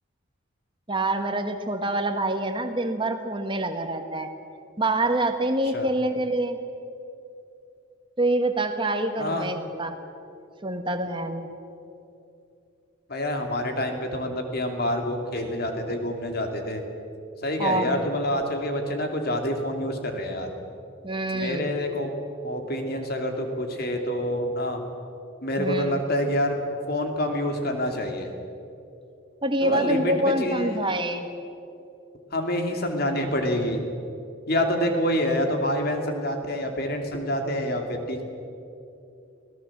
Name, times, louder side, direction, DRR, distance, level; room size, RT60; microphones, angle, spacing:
voice 1, 0.9-4.3 4.8-6.6 8.2-9.9 10.6-11.5 17.6-18.0 21.0-21.7 25.6-26.0 29.4-31.3, right 1 dB, 25° right, 6 dB, 1.6 m, -26 dB
voice 2, 9.2-9.5 13.1-16.8 17.4-20.5 21.3-22.1 22.4-24.8 25.4-26.6 26.9-28.3 29.6-30.8 32.3-33.8 34.5-38.2, left 1 dB, 50° left, 4 dB, 2.8 m, -27 dB
25.5 x 18.0 x 7.4 m, 2.7 s
head